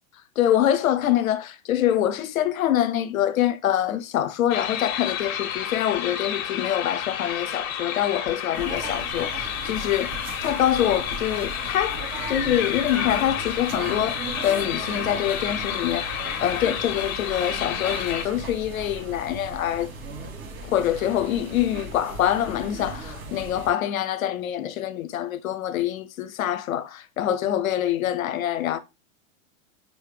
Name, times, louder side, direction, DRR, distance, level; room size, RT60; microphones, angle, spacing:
voice 1, 0.4-10.1 10.4-16.1 16.4-19.9 20.6-28.8, left 11 dB, 85° left, 0.8 m, -25 dB
sound 1, 4.5-18.2, left 9 dB, 40° left, 1.6 m, -30 dB
sound 2, 8.5-23.7, right 2 dB, 30° right, 3.2 m, -37 dB
5.4 x 3.1 x 3.2 m
hypercardioid pair, 115°, 41 cm